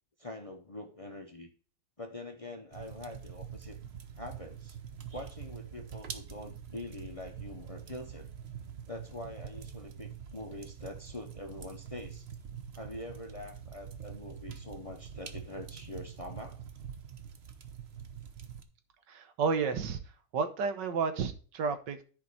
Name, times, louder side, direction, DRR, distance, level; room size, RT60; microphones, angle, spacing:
voice 1, 0.2-1.5 2.0-3.8 4.2-4.8 5.1-8.3 8.9-12.3 12.7-16.6, left 2 dB, 40° left, 4 dB, 0.5 m, -44 dB
sound 1, 2.7-18.6, right 8 dB, 50° right, 0.8 m, -45 dB
voice 2, 19.1-20.0 20.3-22.0, right 5 dB, 75° right, 9 dB, 1.6 m, -31 dB
11.0 x 5.0 x 4.0 m, 0.39 s
omnidirectional pair, 1.9 m